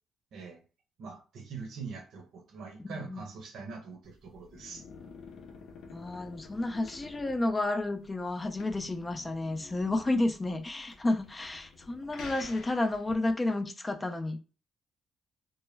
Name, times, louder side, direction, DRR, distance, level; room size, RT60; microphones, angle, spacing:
voice 1, 0.3-0.6 1.0-4.8, right 5 dB, 70° right, 0.7 m, -43 dB
sound 1, 4.0-13.3, left 4 dB, 80° left, 0.6 m, -50 dB
voice 2, 5.9-14.4, left 2 dB, 20° left, 0.4 m, -31 dB
2.1 x 2.1 x 3.2 m
cardioid pair, 90°, 0 cm